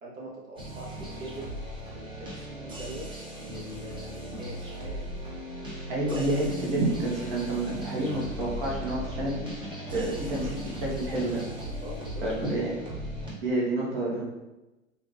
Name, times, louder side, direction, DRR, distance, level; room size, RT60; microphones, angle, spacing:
voice 1, 0.0-1.5 1.9-5.1 11.8-12.2, right 1 dB, 75° right, -5 dB, 1.5 m, -43 dB
sound 1, 0.6-13.3, right 1 dB, 10° right, 0.9 m, -37 dB
voice 2, 5.9-9.5 9.9-11.4 12.2-12.7 13.4-14.2, right 1 dB, 45° right, -4 dB, 1.4 m, -29 dB
4.7 x 3.6 x 2.6 m, 1.0 s
figure-of-eight pair, 100°, 41 cm